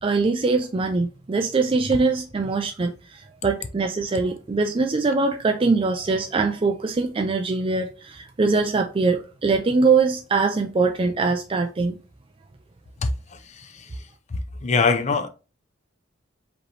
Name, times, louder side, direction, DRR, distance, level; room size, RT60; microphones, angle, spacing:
voice 1, 0.0-12.0, right 4 dB, 25° right, 0.4 m, -22 dB
voice 2, 13.5-13.9 14.3-15.3, left 4 dB, 35° left, 0.4 m, -23 dB
5.0 x 3.0 x 3.2 m
head